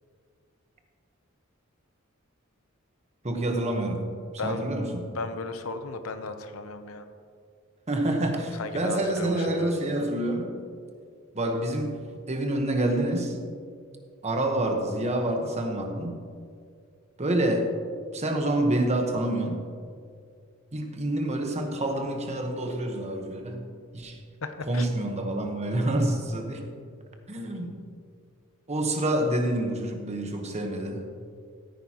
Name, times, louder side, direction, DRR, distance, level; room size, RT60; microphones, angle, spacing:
voice 1, 3.2-4.1 4.4-5.0 7.9-10.6 11.3-12.0 12.3-13.4 14.2-16.2 17.2-17.8 18.1-19.7 20.7-23.7 23.9-24.2 24.7-26.7 27.3-27.9 28.7-31.1, right 1 dB, 30° right, 3 dB, 1.2 m, -27 dB
voice 2, 4.4-4.7 5.1-7.1 8.6-9.7 24.4-24.8, left 3 dB, 75° left, 8 dB, 0.8 m, -35 dB
14.5 x 9.2 x 3.0 m, 2.2 s
head